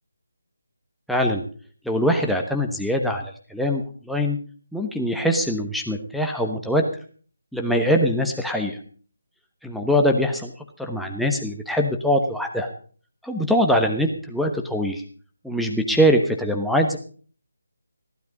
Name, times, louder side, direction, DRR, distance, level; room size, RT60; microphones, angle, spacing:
voice 1, 1.1-1.4 1.8-4.4 4.7-6.8 7.5-8.8 9.6-10.5 10.8-12.7 13.2-15.0 15.4-17.0, equal, ahead, 1 dB, 1.2 m, -22 dB
15.5 x 12.0 x 5.2 m, 0.43 s
figure-of-eight pair, 155°, 0 cm